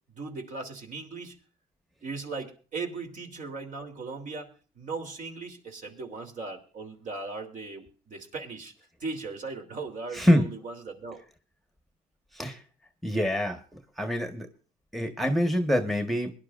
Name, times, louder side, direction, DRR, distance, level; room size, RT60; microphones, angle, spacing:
voice 1, 0.1-1.4 2.0-8.7 9.0-11.2, right 4 dB, 50° right, 4 dB, 3.2 m, -38 dB
voice 2, 10.1-10.5 12.3-12.6 13.0-13.6 14.0-14.5 14.9-16.3, equal, ahead, 6 dB, 1.4 m, -25 dB
22.5 x 11.0 x 2.5 m, 0.39 s
cardioid pair, 110°, 17 cm